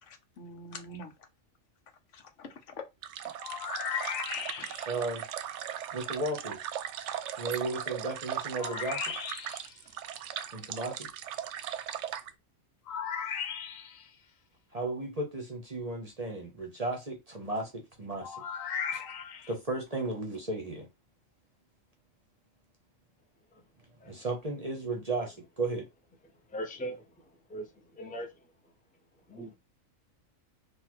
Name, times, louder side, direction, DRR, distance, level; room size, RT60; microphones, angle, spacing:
voice 1, 0.0-1.3 2.1-2.8 4.4-4.7, left 2 dB, 70° left, 1.2 m, -46 dB
sound 1, 3.0-12.3, right 10 dB, 70° right, 0.8 m, -38 dB
sound 2, 3.4-5.0 8.6-9.7 12.9-14.1 18.2-19.5, left 7 dB, 85° left, 1.2 m, -36 dB
voice 2, 4.9-5.2 5.9-6.6 7.4-9.1 10.5-11.1 14.7-18.4 18.9-19.0 19.5-20.9 24.0-25.9, right 2 dB, 35° right, 0.8 m, -34 dB
voice 3, 26.5-27.0 27.5-27.7 27.9-28.3 29.3-29.5, right 1 dB, 10° left, 0.6 m, -39 dB
4.1 x 2.6 x 4.5 m
omnidirectional pair, 1.3 m